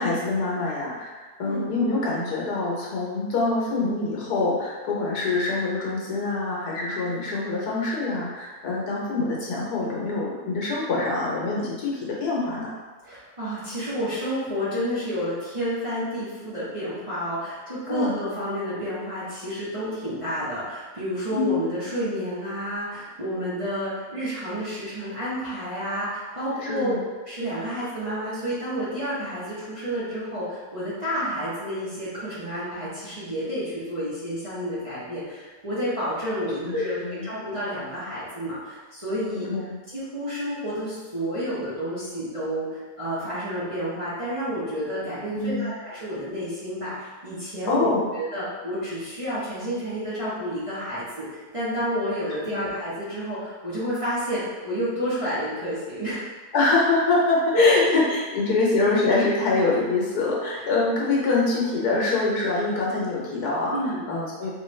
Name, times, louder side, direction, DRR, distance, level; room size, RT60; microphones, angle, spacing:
voice 1, 0.0-12.8 17.9-18.2 21.3-21.7 26.6-27.0 36.6-37.3 39.5-39.8 45.3-45.7 47.7-48.0 52.3-52.6 56.5-63.7 64.1-64.5, left 3 dB, 75° left, -4 dB, 1.4 m, -25 dB
voice 2, 13.0-26.9 27.3-39.5 39.9-56.2 57.5-57.9 63.7-64.0, equal, 25° right, -12 dB, 0.9 m, -29 dB
3.1 x 3.1 x 3.2 m, 1.3 s
omnidirectional pair, 1.7 m